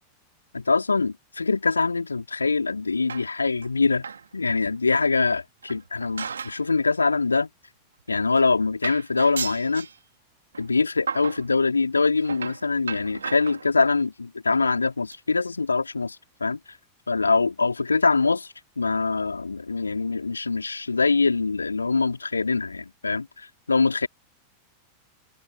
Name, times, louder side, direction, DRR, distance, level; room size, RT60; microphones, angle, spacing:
voice 1, 0.5-4.0 4.3-7.5 8.1-9.9 10.6-16.2 16.4-16.6 17.1-24.1, left 4 dB, 80° left, 4.1 m, -24 dB
sound 1, 3.1-3.7 4.0-4.3 4.7-4.8 5.6-6.7 7.0-7.2 8.0-8.1 8.4-8.5 8.8-10.0 10.5-10.7 11.1-11.5 12.2-14.0 14.6-14.8 15.1-15.2 15.5-15.6 15.8-15.9, right 6 dB, 70° right, 2.5 m, -35 dB
open air
figure-of-eight pair, 90°, 0 cm